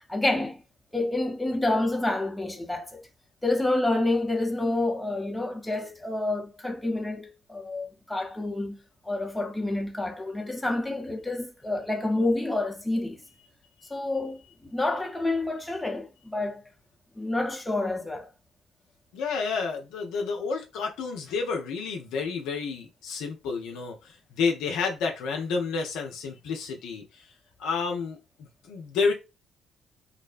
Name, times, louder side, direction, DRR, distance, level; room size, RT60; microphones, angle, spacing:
voice 1, 0.1-0.6 0.9-3.0 3.4-8.8 9.0-13.2 13.9-16.6 17.2-18.3, left 2 dB, 10° left, 0.7 m, -28 dB
voice 2, 19.1-27.2 27.6-28.2 28.6-29.1, left 5 dB, 75° left, 0.5 m, -30 dB
2.6 x 2.1 x 2.4 m
hypercardioid pair, 45°, 0 cm